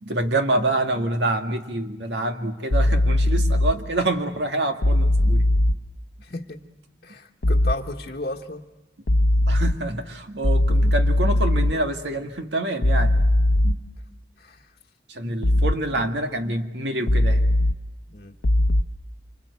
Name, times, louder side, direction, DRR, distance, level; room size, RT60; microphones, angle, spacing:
voice 1, 0.0-5.5 9.4-13.2 13.6-13.8 15.1-17.4, right 2 dB, 75° right, 5 dB, 1.9 m, -26 dB
sound 1, 2.7-3.7 4.8-5.7 7.4-7.7 9.1-9.7 10.4-11.7 12.8-13.7 15.4-15.7 17.1-17.7 18.4-18.8, left 1 dB, 85° left, 0.9 m, -19 dB
voice 2, 6.2-6.6 7.0-8.7 14.4-14.7 18.1-18.4, left 2 dB, 50° left, -1 dB, 1.3 m, -34 dB
27.0 x 25.5 x 8.2 m, 1.0 s
head